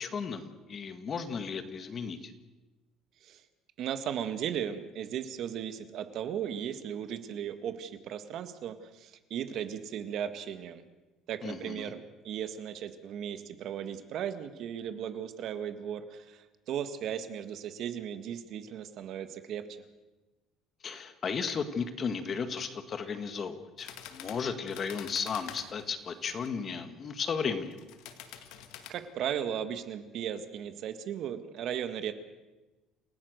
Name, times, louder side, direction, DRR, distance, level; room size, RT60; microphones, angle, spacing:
voice 1, 0.0-2.3 11.4-11.9 20.8-27.8, left 5 dB, 30° left, 9 dB, 1.7 m, -35 dB
voice 2, 3.8-10.8 11.3-19.6 28.9-32.1, right 9 dB, 50° right, 10 dB, 1.8 m, -36 dB
sound 1, 23.8-26.5 27.6-28.9, left 10 dB, 75° left, 2.2 m, -47 dB
28.5 x 17.5 x 6.7 m, 1.1 s
cardioid pair, 160°, 0 cm